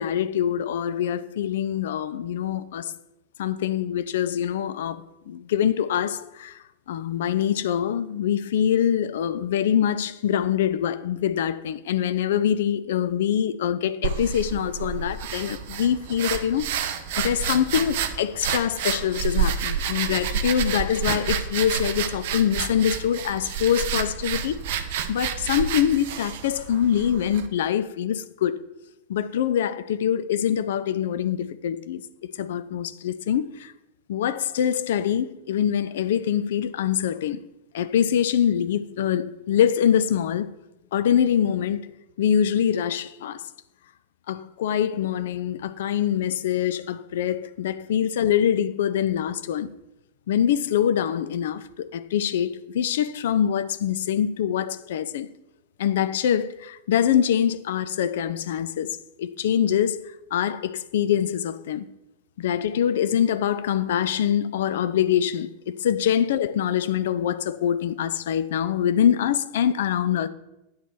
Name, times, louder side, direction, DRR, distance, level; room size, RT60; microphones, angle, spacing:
voice 1, 0.0-2.9 3.4-6.6 6.9-16.9 17.2-24.6 25.1-28.6 29.1-32.0 32.4-33.7 34.1-37.4 37.7-40.5 40.9-41.9 42.2-43.4 44.3-49.7 50.3-55.3 55.8-61.8 62.4-70.3, left 9 dB, 60° left, 0.3 m, -24 dB
sound 1, 14.0-27.5, right 8 dB, 55° right, 0.5 m, -29 dB
8.4 x 3.0 x 5.9 m
figure-of-eight pair, 90°, 0 cm